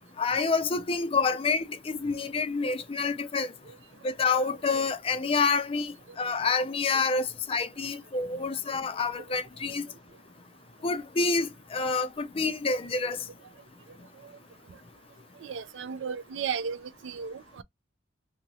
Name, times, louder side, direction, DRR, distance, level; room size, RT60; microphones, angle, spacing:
voice 1, 0.2-3.5 4.0-9.9 10.8-13.2, left 4 dB, 30° left, 0.4 m, -28 dB
voice 2, 15.4-16.8 17.0-17.6, right 6 dB, 70° right, 0.4 m, -34 dB
2.7 x 2.6 x 2.9 m
head